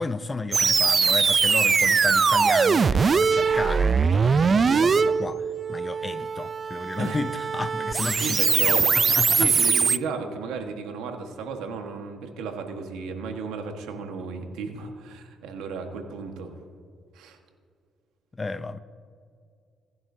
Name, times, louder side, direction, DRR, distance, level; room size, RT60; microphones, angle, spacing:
voice 1, 0.0-9.5 18.3-18.8, left 3 dB, 25° left, 0.6 m, -33 dB
sound 1, 0.5-10.0, right 5 dB, 40° right, 0.3 m, -21 dB
voice 2, 8.2-8.9 9.4-16.6 17.1-17.4, right 5 dB, 90° right, 1.4 m, -34 dB
18.5 x 11.0 x 2.7 m
cardioid pair, 75°, 0 cm